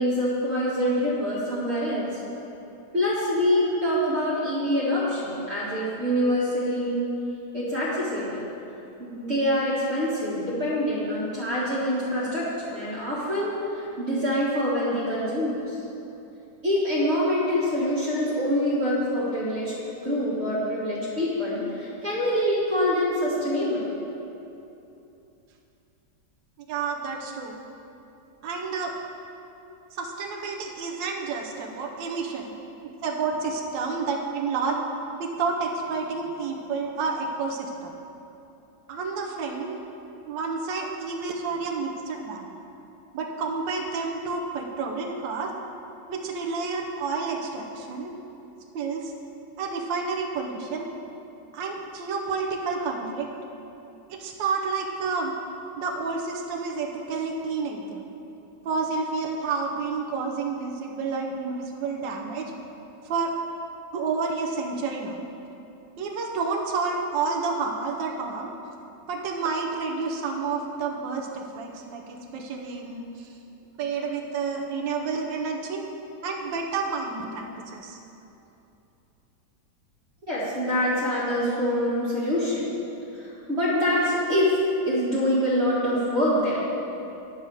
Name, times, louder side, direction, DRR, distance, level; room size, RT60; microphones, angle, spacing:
voice 1, 0.0-2.1 2.9-7.0 7.5-8.4 9.0-15.7 16.6-19.7 20.0-23.9 80.3-82.7 83.1-84.5 84.9-86.6, equal, 35° right, -10 dB, 1.9 m, -25 dB
voice 2, 26.7-27.5 28.4-28.9 29.9-32.5 33.0-34.7 35.2-37.9 38.9-39.8 40.3-42.5 43.1-45.5 46.1-48.1 48.7-49.1 49.6-50.9 51.5-53.3 54.1-55.3 55.8-58.0 58.6-62.5 63.0-63.3 63.9-65.1 66.0-68.5 69.1-73.3 73.8-75.8 76.2-78.0, right 4 dB, 85° right, 1 dB, 1.5 m, -30 dB
10.5 x 4.1 x 6.5 m, 2.9 s
omnidirectional pair, 2.0 m